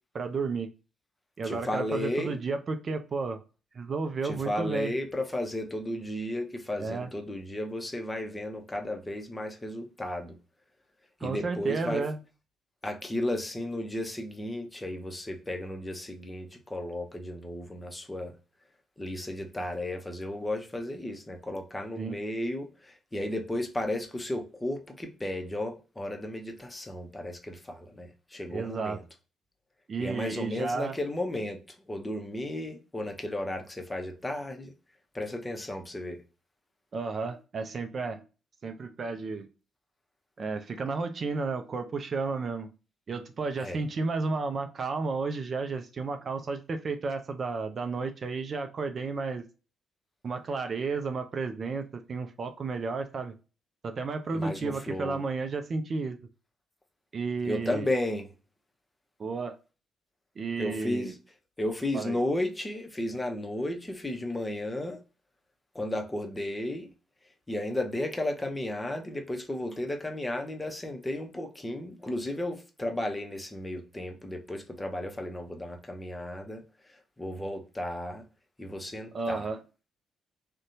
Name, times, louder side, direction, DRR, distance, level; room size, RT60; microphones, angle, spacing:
voice 1, 0.1-0.7 1.4-3.4 3.7-4.9 6.8-7.1 11.2-12.2 22.0-22.2 28.5-29.0 29.9-31.0 36.9-38.2 38.6-39.5 40.4-42.7 43.1-49.4 50.2-53.3 53.8-56.2 57.1-57.9 59.2-59.6 60.4-61.1 61.9-62.2 79.1-79.6, right 4 dB, 45° right, 0.4 m, -32 dB
voice 2, 1.4-2.4 4.2-10.4 11.2-12.1 12.8-18.3 19.0-29.0 30.0-31.6 31.9-34.7 35.1-36.2 43.6-43.8 54.3-55.2 57.4-58.3 60.6-61.1 61.6-65.0 65.7-66.9 67.5-76.6 77.2-78.2 78.6-79.4, left 1 dB, 20° left, 0.7 m, -34 dB
2.6 x 2.1 x 2.6 m
hypercardioid pair, 45°, 0 cm